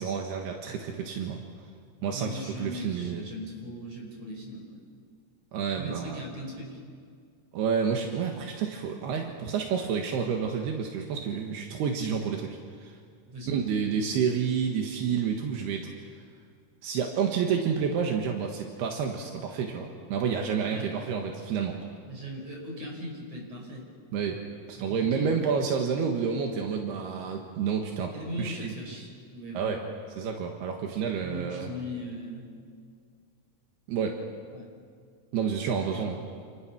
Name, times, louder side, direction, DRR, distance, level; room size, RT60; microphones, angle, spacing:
voice 1, 0.0-1.4 2.0-3.3 5.5-6.2 7.5-13.0 13.5-15.9 16.8-21.8 24.1-24.4 24.7-28.1 28.4-28.7 29.6-29.8 30.2-31.7 33.9-34.2 35.3-36.2, right 6 dB, 80° right, 2 dB, 3.5 m, -29 dB
voice 2, 2.1-4.8 5.8-6.7 13.3-13.7 20.6-20.9 22.1-23.9 24.9-25.4 28.1-29.8 31.2-32.5 34.5-34.7 35.6-36.1, equal, 40° right, 1 dB, 6.4 m, -39 dB
29.0 x 28.5 x 6.2 m, 2.1 s
omnidirectional pair, 4.6 m